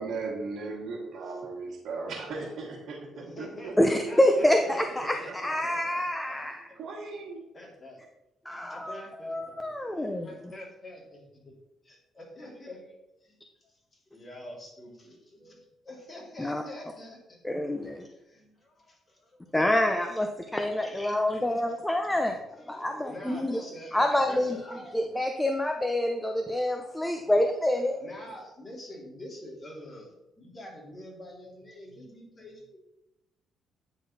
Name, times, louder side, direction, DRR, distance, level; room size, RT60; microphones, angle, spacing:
voice 1, 0.0-4.0 4.5-4.6 5.0-5.3 6.3-6.4 6.7-7.5, right 3 dB, 70° right, -6 dB, 1.6 m, -37 dB
voice 2, 3.1-6.4 7.5-8.0 8.5-9.6 10.0-11.6 11.8-17.4 18.1-19.5 20.9-21.0 21.7-21.8 22.4-25.0 26.5-26.7 28.0-32.9, left 1 dB, 30° left, -1 dB, 2.5 m, -46 dB
voice 3, 3.8-5.2 5.4-6.6 8.5-9.0 9.2-10.3 16.4-16.6 17.4-18.1 19.5-22.4 22.7-23.6 23.9-24.6 24.9-28.0, left 1 dB, 10° left, 4 dB, 0.6 m, -26 dB
9.2 x 3.9 x 4.0 m, 0.93 s
cardioid pair, 90°, 0 cm